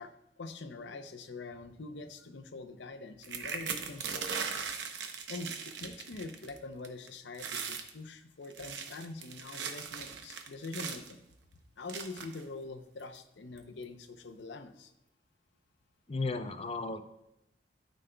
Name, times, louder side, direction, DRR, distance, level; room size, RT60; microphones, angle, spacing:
voice 1, 0.0-4.6 5.3-11.2 11.8-14.9, left 3 dB, 90° left, 9 dB, 0.6 m, -44 dB
sound 1, 3.2-6.6 6.8-7.1 7.3-7.9 8.4-11.1 11.9-12.4 13.1-13.2 13.6-13.8, right 6 dB, 80° right, 0.8 m, -39 dB
voice 2, 16.1-17.0, left 3 dB, 35° left, 8 dB, 0.5 m, -34 dB
12.0 x 5.1 x 2.2 m, 0.87 s
head